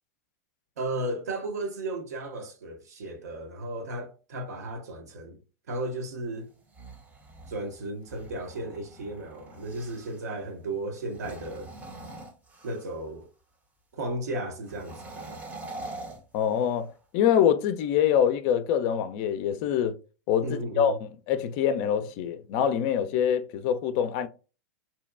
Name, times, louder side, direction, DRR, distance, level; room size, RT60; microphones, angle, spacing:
voice 1, 0.8-5.4 5.7-6.5 7.5-11.7 12.6-13.3 13.9-15.4 20.4-21.0, right 1 dB, 80° right, 0.7 m, -34 dB
sound 1, 6.5-10.3 11.0-13.1 14.6-16.9, right 2 dB, 15° right, 0.6 m, -44 dB
voice 2, 16.3-16.9 17.1-19.9 20.3-24.3, left 9 dB, 50° left, 0.3 m, -25 dB
2.7 x 2.2 x 2.3 m
hypercardioid pair, 110°, 9 cm